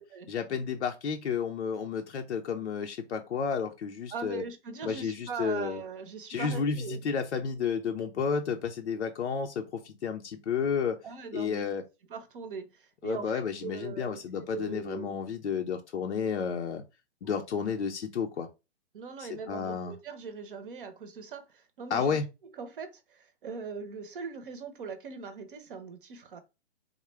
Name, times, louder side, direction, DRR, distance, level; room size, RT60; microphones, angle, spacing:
voice 1, 0.3-4.4 4.8-5.8 6.3-11.0 11.3-11.8 13.0-16.8 17.2-18.5 19.2-19.9 21.9-22.3, left 6 dB, 80° left, 0.6 m, -31 dB
voice 2, 4.1-7.1 11.0-11.7 12.1-15.1 17.2-17.3 18.9-22.2 22.6-26.4, right 5 dB, 50° right, 0.7 m, -40 dB
3.6 x 2.1 x 3.2 m
hypercardioid pair, 130°, 34 cm